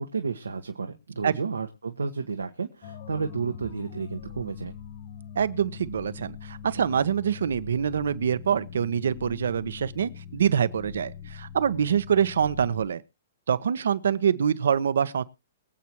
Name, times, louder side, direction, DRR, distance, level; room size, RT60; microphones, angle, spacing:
voice 1, 0.0-4.7, right 5 dB, 85° right, 1.4 m, -32 dB
sound 1, 2.8-12.9, left 8 dB, 55° left, 2.9 m, -42 dB
voice 2, 5.3-13.0 13.5-15.2, right 8 dB, 70° right, 1.0 m, -25 dB
23.5 x 8.2 x 3.1 m
hypercardioid pair, 120°, 0 cm